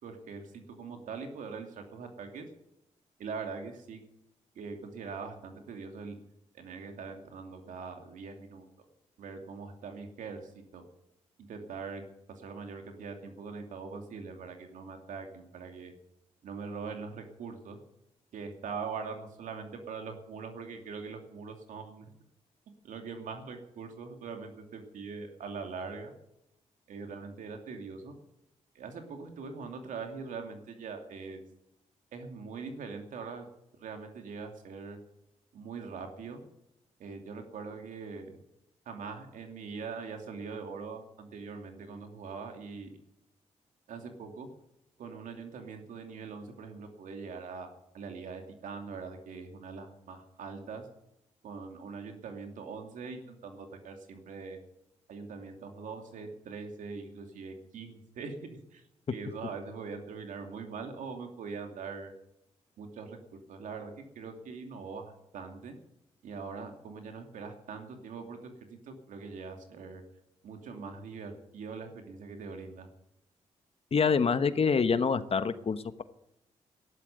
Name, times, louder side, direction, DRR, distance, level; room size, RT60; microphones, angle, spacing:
voice 1, 0.0-2.5 3.2-4.0 4.5-6.2 6.5-8.6 9.2-10.8 11.5-12.0 12.4-15.9 16.4-17.8 18.3-22.1 22.8-26.1 26.9-28.1 28.7-31.4 32.1-33.5 33.8-35.0 35.5-36.4 37.0-38.4 38.9-43.0 43.9-44.5 45.0-50.9 51.4-54.6 55.1-58.3 58.7-58.8 59.1-62.1 62.8-63.2 63.5-65.8 66.2-70.0 70.4-72.9, right 5 dB, 80° right, 5 dB, 2.7 m, -42 dB
voice 2, 73.9-76.0, left 5 dB, 50° left, 12 dB, 1.2 m, -26 dB
13.0 x 11.0 x 9.3 m, 0.83 s
cardioid pair, 65°, 13 cm